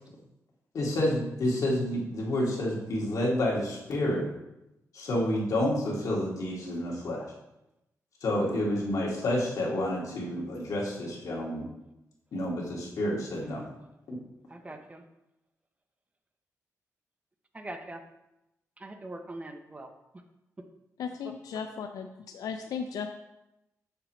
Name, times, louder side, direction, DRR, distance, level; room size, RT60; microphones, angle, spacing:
voice 1, 0.7-4.3 4.9-7.2 8.2-11.7 12.3-13.6 14.1-14.2, left 1 dB, 70° left, -3 dB, 2.1 m, -29 dB
voice 2, 13.4-13.7 14.5-15.0 17.5-18.0 18.8-19.9, right 2 dB, 25° right, 6 dB, 0.7 m, -42 dB
voice 3, 21.0-23.1, left 6 dB, 90° left, 6 dB, 0.4 m, -36 dB
7.6 x 6.7 x 3.1 m, 0.91 s
cardioid pair, 95°, 6 cm